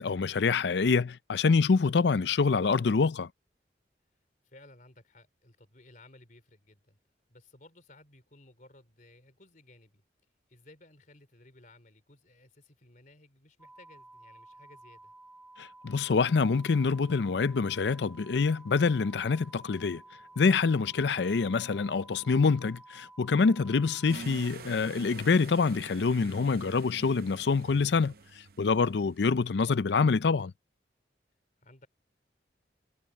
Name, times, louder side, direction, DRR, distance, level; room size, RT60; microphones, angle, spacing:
voice 1, 0.0-3.3 15.6-20.0 20.4-28.1 28.6-30.5, left 4 dB, 70° left, 0.5 m, -26 dB
voice 2, 4.4-7.0 7.3-10.0 10.5-15.1 31.6-31.9, left 2 dB, 45° left, 3.5 m, -57 dB
sound 1, 13.6-24.2, right 2 dB, 5° right, 1.3 m, -53 dB
sound 2, 16.4-21.5, left 1 dB, 20° left, 7.0 m, -69 dB
sound 3, 24.1-29.5, right 4 dB, 55° right, 0.6 m, -47 dB
head